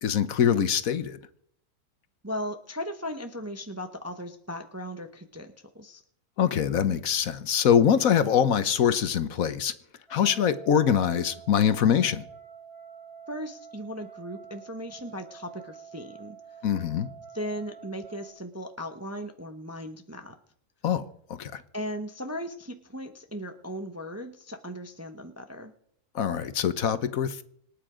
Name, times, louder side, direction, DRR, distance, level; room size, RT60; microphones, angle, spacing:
voice 1, 0.0-1.2 6.4-9.7 10.1-12.2 16.6-17.1 20.8-21.1 21.4-21.5 26.1-27.4, left 8 dB, 65° left, 1.3 m, -23 dB
voice 2, 2.2-6.0 13.3-16.4 17.3-20.4 21.7-25.7, equal, 15° right, 0.7 m, -37 dB
sound 1, 10.1-18.3, right 7 dB, 70° right, 6.3 m, -47 dB
26.5 x 8.8 x 5.0 m
omnidirectional pair, 1.6 m